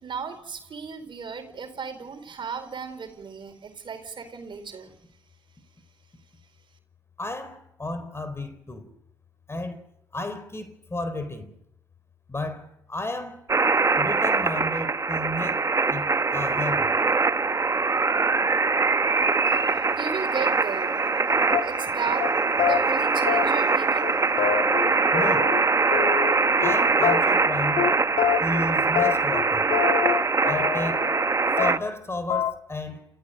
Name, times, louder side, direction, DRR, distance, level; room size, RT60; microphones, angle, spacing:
voice 1, 0.0-4.9 19.5-19.6 20.0-21.1 21.6-22.3 22.7-24.2, right 6 dB, 55° right, 4.3 m, -35 dB
voice 2, 7.2-8.9 9.5-9.8 10.1-11.5 12.3-13.5 14.0-16.9 25.1-25.5 26.6-27.8 28.4-29.7 30.4-31.1 31.6-33.1, left 2 dB, 25° left, 4.2 m, -33 dB
sound 1, 13.5-31.8, right 4 dB, 30° right, 1.0 m, -23 dB
sound 2, 21.5-21.9 22.2-22.3 22.6-22.8 23.3-23.8 24.0-24.1 24.4-25.6 25.9-26.7 27.0-27.5 27.8-27.9 28.2-28.6 28.9-31.3 31.6-32.0 32.3-32.5, left 9 dB, 75° left, 1.5 m, -26 dB
29.5 x 15.0 x 6.6 m
supercardioid pair, 55°, 10 cm